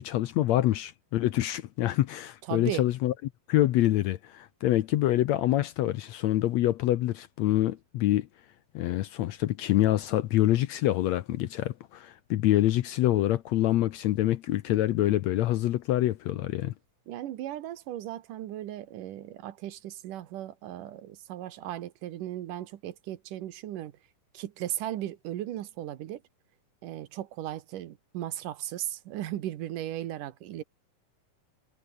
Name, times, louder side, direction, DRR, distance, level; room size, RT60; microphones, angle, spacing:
voice 1, 0.0-3.1 3.5-8.3 8.7-16.7, left 14 dB, 70° left, 1.8 m, -26 dB
voice 2, 2.5-2.8 17.1-23.9 24.3-26.2 26.8-30.6, right 13 dB, 80° right, 2.8 m, -36 dB
omnidirectional pair, 3.8 m